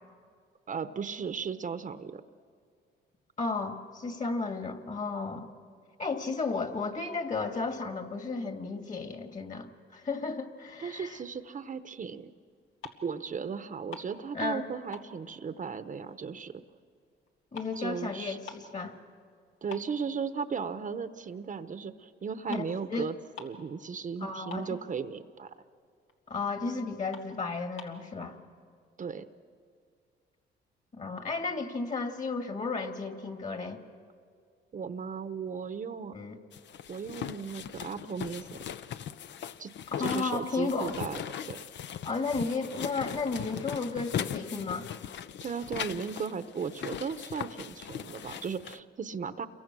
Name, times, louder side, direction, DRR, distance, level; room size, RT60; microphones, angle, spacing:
voice 1, 0.7-2.2 10.8-12.3 13.0-16.6 17.8-18.4 19.6-25.5 29.0-29.3 34.7-36.1 36.9-38.6 39.6-39.7 40.0-41.6 45.4-49.5, right 6 dB, 40° right, 11 dB, 0.9 m, -36 dB
voice 2, 3.4-5.5 6.0-11.2 14.3-14.6 17.5-19.0 22.5-23.1 24.2-24.7 26.3-28.4 30.9-33.8 36.1-36.4 40.0-41.0 42.0-44.9, left 4 dB, 40° left, 5 dB, 2.4 m, -33 dB
sound 1, 12.6-13.2 13.5-14.6 14.9-16.4 16.8-18.8 19.2-19.3 19.7-20.8 21.2-21.4 22.2-22.3 22.5-22.8 23.0-23.1 23.3-23.7 24.0-24.1 24.3-25.1 25.6-25.7 26.1-26.2 26.6-26.7 27.1-28.0, left 5 dB, 85° left, 2.3 m, -47 dB
sound 2, 36.5-48.8, left 9 dB, 65° left, 0.7 m, -39 dB
28.5 x 23.0 x 6.2 m, 2.1 s
cardioid pair, 90°, 20 cm